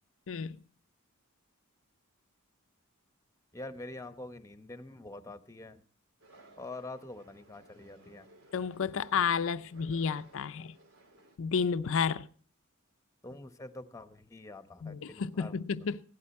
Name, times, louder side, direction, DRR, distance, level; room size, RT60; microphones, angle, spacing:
voice 1, 3.5-5.8 6.6-8.3 13.2-15.5, left 2 dB, 15° left, 0.9 m, -45 dB
sound 1, 6.2-11.4, right 2 dB, 85° right, 3.5 m, -59 dB
voice 2, 8.5-10.7 11.4-12.3 14.8-16.0, left 6 dB, 65° left, 0.5 m, -31 dB
16.0 x 12.0 x 4.2 m
head